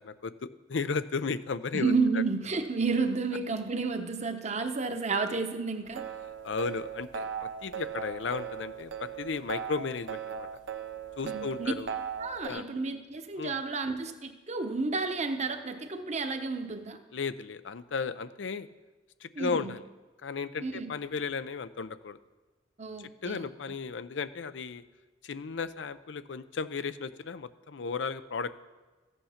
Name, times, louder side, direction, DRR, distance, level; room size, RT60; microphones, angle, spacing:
voice 1, 0.0-1.9 6.4-10.5 11.2-11.9 12.4-12.7 13.4-13.6 17.1-18.7 19.2-19.8 20.2-22.2 23.0-24.8 25.2-28.6, left 5 dB, 80° left, 13 dB, 0.6 m, -35 dB
voice 2, 1.7-6.0 11.2-11.7 12.2-17.0 19.4-19.7 20.6-20.9 22.8-23.4, right 4 dB, 40° right, 7 dB, 0.9 m, -31 dB
sound 1, 5.8-12.5, right 7 dB, 75° right, 0.7 m, -38 dB
14.5 x 8.2 x 5.8 m, 1.2 s
head